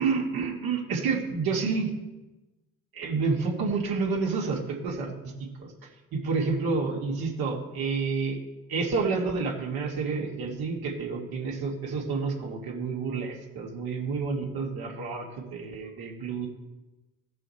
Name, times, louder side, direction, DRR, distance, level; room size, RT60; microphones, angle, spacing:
voice 1, 0.0-1.9 2.9-5.1 5.6-5.7 6.1-8.4 8.7-16.5, right 4 dB, 70° right, -1 dB, 2.2 m, -29 dB
15.5 x 5.5 x 4.3 m, 1.1 s
supercardioid pair, 70°, 38 cm